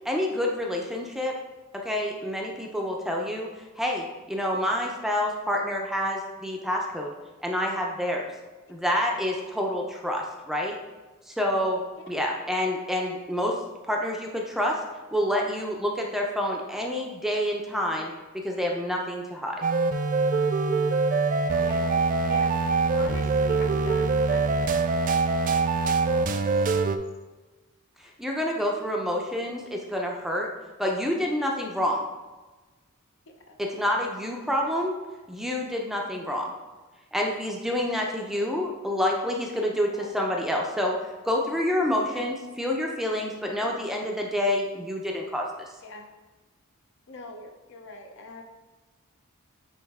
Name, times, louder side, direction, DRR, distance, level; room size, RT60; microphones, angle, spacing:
voice 1, 0.0-1.3 1.8-3.5 3.8-7.1 7.4-8.3 8.7-10.8 11.3-11.8 12.1-13.6 13.9-14.8 15.1-19.6 28.0-30.5 30.8-32.1 33.6-34.9 35.3-36.5 37.1-40.9 41.2-45.7, left 1 dB, ahead, -1 dB, 0.6 m, -28 dB
sound 1, 19.6-27.0, right 4 dB, 40° right, 0.3 m, -24 dB
voice 2, 22.3-22.7 22.9-24.6 26.7-26.9 33.5-33.6 39.9-40.1 42.1-42.3 45.8-46.1 47.1-48.4, left 2 dB, 60° left, 3 dB, 0.8 m, -42 dB
8.6 x 3.0 x 3.6 m, 1.2 s
head